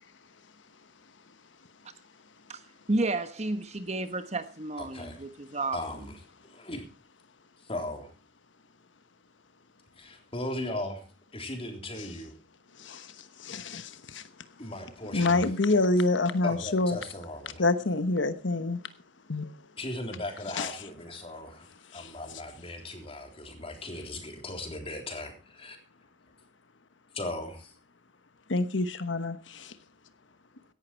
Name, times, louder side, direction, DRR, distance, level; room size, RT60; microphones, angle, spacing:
voice 1, 2.9-5.8, right 2 dB, 35° right, 11 dB, 1.2 m, -31 dB
voice 2, 4.8-5.3 5.7-6.8 7.6-8.1 10.0-11.1 11.3-12.3 14.6-15.4 16.4-17.6 19.8-21.7 21.9-25.8 27.1-27.8, left 1 dB, 30° left, 4 dB, 3.7 m, -38 dB
voice 3, 12.7-14.5 15.1-17.0 17.6-18.8 19.3-19.6 20.5-20.7 21.9-22.2 28.5-29.8, left 2 dB, 85° left, 11 dB, 1.1 m, -27 dB
17.0 x 11.5 x 4.5 m, 0.34 s
head